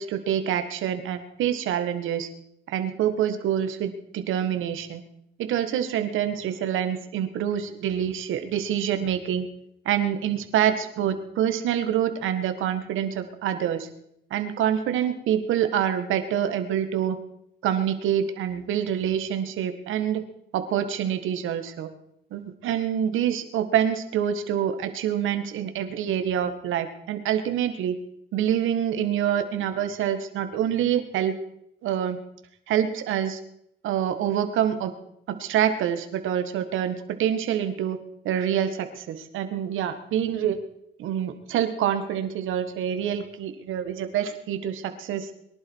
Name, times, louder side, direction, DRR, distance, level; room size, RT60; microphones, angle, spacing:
voice 1, 0.0-2.3 2.7-5.0 5.4-9.5 9.8-13.9 14.3-17.2 17.6-20.2 20.5-21.9 22.3-28.0 28.3-31.3 31.8-32.2 32.7-33.4 33.8-34.9 35.3-38.0 38.2-40.6 41.0-45.3, right 9 dB, 85° right, 9 dB, 1.8 m, -26 dB
23.5 x 11.5 x 4.7 m, 0.75 s
cardioid pair, 90°, 20 cm